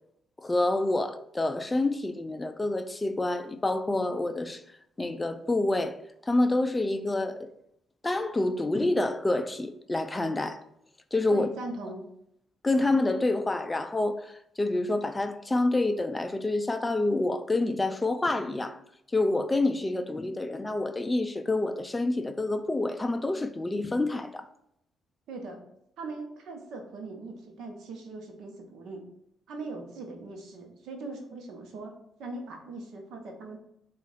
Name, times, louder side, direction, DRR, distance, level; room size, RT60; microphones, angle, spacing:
voice 1, 0.4-4.6 5.0-6.0 6.2-7.5 8.0-10.6 11.1-11.5 12.6-18.8 19.1-24.5, left 2 dB, 20° left, 0.3 m, -27 dB
voice 2, 11.3-12.0 25.3-25.6 26.0-29.0 29.5-31.9 32.2-33.6, right 3 dB, 80° right, 0.8 m, -40 dB
4.0 x 2.4 x 3.9 m
cardioid pair, 90°, 0 cm